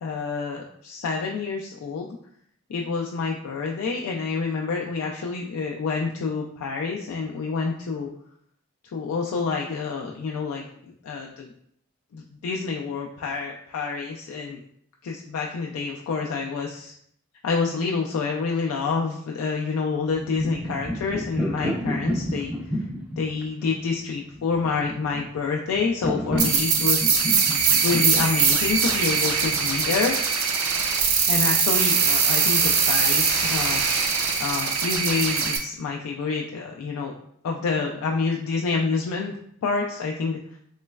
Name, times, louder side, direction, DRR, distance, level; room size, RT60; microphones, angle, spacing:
voice 1, 0.0-2.1 2.7-8.1 8.9-10.7 11.0-11.5 12.1-14.6 15.0-16.9 17.4-22.5 23.2-27.3 27.8-30.2 31.3-33.8 34.4-37.1 37.4-40.4, left 4 dB, 90° left, 0 dB, 0.3 m, -28 dB
sound 1, 20.1-29.8, equal, 5° right, 0.3 m, -31 dB
sound 2, 26.4-35.6, right 5 dB, 80° right, 0.5 m, -22 dB
3.1 x 3.0 x 2.3 m, 0.68 s
head